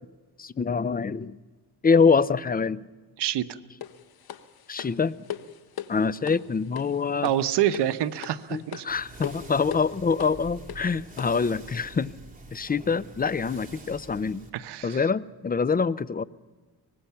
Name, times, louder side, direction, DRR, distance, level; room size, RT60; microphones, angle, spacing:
voice 1, 0.4-1.3 1.8-2.8 4.7-5.1 5.9-7.3 8.5-12.1 12.5-14.4 14.8-16.2, left 5 dB, 20° left, 17 dB, 0.6 m, -25 dB
voice 2, 3.2-3.5 7.2-8.8 14.5-15.0, right 11 dB, 80° right, 10 dB, 1.0 m, -26 dB
sound 1, 3.8-11.5, left 10 dB, 65° left, 1.2 m, -40 dB
sound 2, 8.9-14.5, right 2 dB, 20° right, 3.5 m, -46 dB
24.0 x 20.5 x 5.8 m, 1.3 s
cardioid pair, 105°, 40 cm